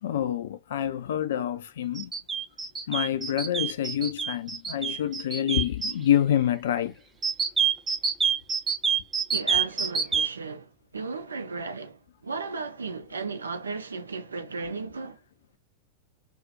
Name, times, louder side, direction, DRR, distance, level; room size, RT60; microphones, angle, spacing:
voice 1, 0.0-2.1 2.9-6.9, left 10 dB, 60° left, 0.3 m, -27 dB
sound 1, 1.9-5.9 7.2-10.3, right 6 dB, 15° right, 0.5 m, -26 dB
voice 2, 9.3-15.2, right 4 dB, 75° right, 0.4 m, -35 dB
2.4 x 2.0 x 2.7 m
figure-of-eight pair, 90°, 0 cm